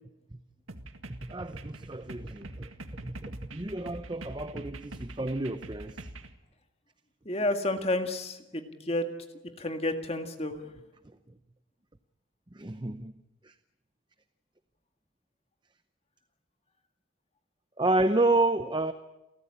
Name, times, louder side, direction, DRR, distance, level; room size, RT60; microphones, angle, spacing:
sound 1, 0.7-6.3, right 2 dB, 85° right, 1.9 m, -44 dB
voice 1, 1.1-2.7 3.0-6.1 11.0-11.2 12.5-13.1 13.4-13.5 17.8-18.9, right 2 dB, 20° right, 0.7 m, -30 dB
voice 2, 7.3-9.1 9.6-10.6, left 1 dB, 30° left, 1.9 m, -30 dB
29.5 x 14.0 x 8.6 m
head